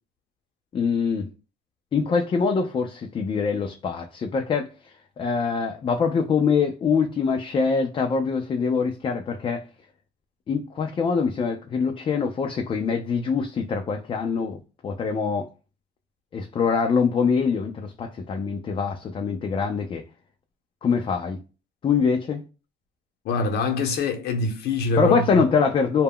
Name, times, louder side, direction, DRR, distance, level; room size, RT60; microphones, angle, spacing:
voice 1, 0.7-1.3 1.9-4.7 5.2-9.6 10.5-15.5 16.3-20.0 20.8-21.4 21.8-22.4 25.0-26.0, left 5 dB, 30° left, 0.4 m, -24 dB
voice 2, 23.2-25.4, left 3 dB, 70° left, 0.7 m, -24 dB
2.2 x 2.0 x 3.5 m
cardioid pair, 110°, 17 cm